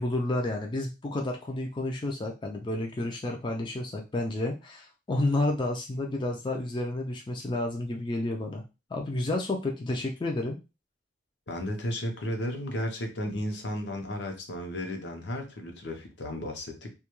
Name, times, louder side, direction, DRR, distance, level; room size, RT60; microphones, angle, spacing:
voice 1, 0.0-8.6 8.9-10.6, left 2 dB, 25° left, 1 dB, 0.3 m, -30 dB
voice 2, 11.5-17.0, left 1 dB, 75° left, 3 dB, 0.7 m, -34 dB
2.3 x 2.2 x 2.9 m, 0.28 s
head